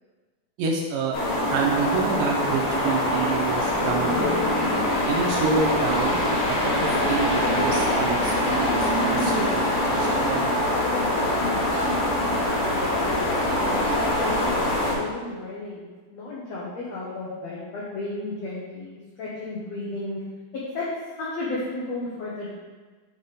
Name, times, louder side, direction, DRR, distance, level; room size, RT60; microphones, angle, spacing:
voice 1, 0.6-1.2 1.5-4.3 5.1-6.2 6.5-10.6, right 4 dB, 80° right, 0 dB, 2.2 m, -28 dB
sound 1, 1.1-14.9, left 1 dB, 60° left, 1.6 m, -23 dB
voice 2, 12.7-14.6 14.9-20.2 20.7-20.9 21.2-22.5, left 2 dB, 85° left, -6 dB, 1.4 m, -33 dB
7.7 x 3.5 x 3.9 m, 1.4 s
omnidirectional pair, 4.2 m